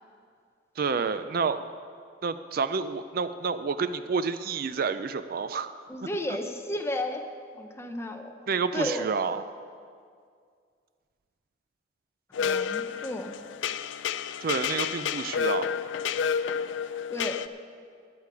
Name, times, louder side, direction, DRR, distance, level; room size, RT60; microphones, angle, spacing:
voice 1, 0.8-1.7 2.2-5.7 8.5-9.4 14.4-15.7, right 5 dB, 50° right, 12 dB, 0.4 m, -29 dB
voice 2, 5.9-7.3 7.5-8.3 8.7-9.0 12.4-13.4 17.1-17.4, left 1 dB, 15° left, 4 dB, 0.8 m, -33 dB
sound 1, 12.3-17.5, left 7 dB, 90° left, 0.4 m, -30 dB
15.0 x 10.0 x 4.8 m, 2.2 s
head